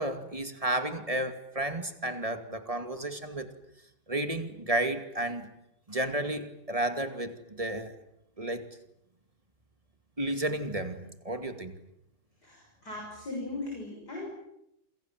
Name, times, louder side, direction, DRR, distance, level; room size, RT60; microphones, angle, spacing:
voice 1, 0.0-3.5 4.1-5.5 5.9-7.9 8.4-8.7 10.2-11.7, right 1 dB, 15° right, 8 dB, 2.3 m, -32 dB
voice 2, 12.4-14.4, left 2 dB, 45° left, -1 dB, 7.4 m, -38 dB
28.0 x 26.5 x 7.6 m, 0.80 s
omnidirectional pair, 2.3 m